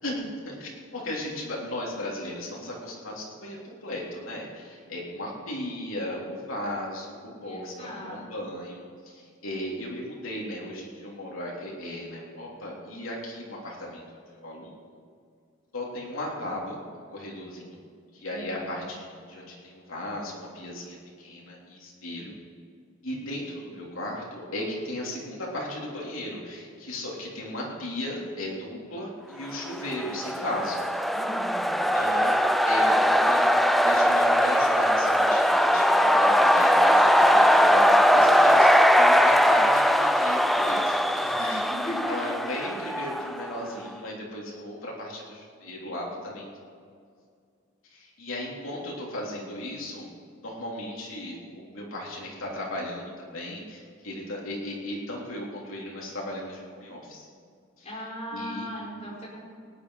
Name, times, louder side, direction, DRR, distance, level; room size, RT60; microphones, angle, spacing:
voice 1, 0.0-8.8 9.0-14.0 14.3-14.8 15.7-17.8 18.1-22.3 23.0-30.9 31.9-32.4 32.6-46.8 47.8-50.1 50.4-57.3 57.8-57.9 58.3-58.7, left 1 dB, 85° left, -3 dB, 3.5 m, -36 dB
voice 2, 7.4-8.3 18.3-18.9 31.1-31.9 41.7-42.1 57.8-59.4, equal, 30° left, -5 dB, 4.2 m, -38 dB
sound 1, 29.8-43.6, equal, ahead, 0.3 m, -20 dB
18.0 x 10.0 x 4.9 m, 2.2 s
head